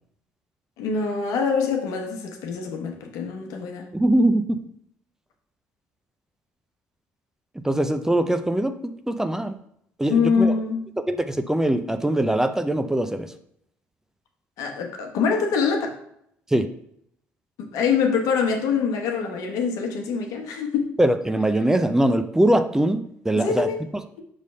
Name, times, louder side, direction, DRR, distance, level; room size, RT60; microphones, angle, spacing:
voice 1, 0.8-3.9 10.1-10.8 14.6-15.9 17.6-20.9 23.3-23.8, left 5 dB, 75° left, 3 dB, 1.0 m, -24 dB
voice 2, 3.9-4.6 7.5-9.6 10.0-10.5 11.0-13.3 16.5-16.7 21.0-23.0 23.2-24.0, right 1 dB, 10° right, 9 dB, 0.5 m, -22 dB
5.4 x 3.2 x 5.5 m, 0.72 s
supercardioid pair, 60°, 6 cm